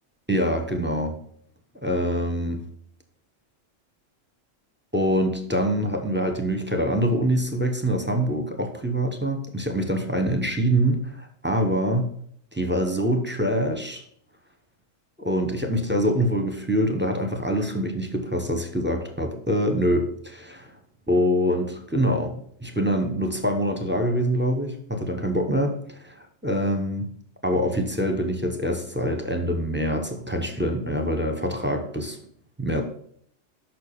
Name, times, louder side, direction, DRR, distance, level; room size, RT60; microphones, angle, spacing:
voice 1, 0.3-1.2 1.8-2.6 4.9-12.1 12.5-14.0 15.2-20.7 21.1-27.1 27.4-32.2 32.6-32.8, equal, 10° right, 5 dB, 0.7 m, -25 dB
6.7 x 5.9 x 5.2 m, 0.63 s
omnidirectional pair, 1.3 m